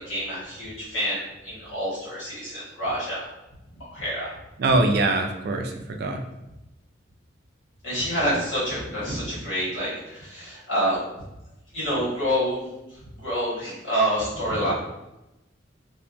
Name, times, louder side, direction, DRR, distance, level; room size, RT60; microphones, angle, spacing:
voice 1, 0.0-3.2 3.9-4.3 7.8-11.0 11.7-12.7 13.2-14.7, equal, 90° left, -8 dB, 1.4 m, -27 dB
voice 2, 4.6-6.2, right 2 dB, 55° right, 4 dB, 0.3 m, -23 dB
2.7 x 2.2 x 2.5 m, 0.94 s
head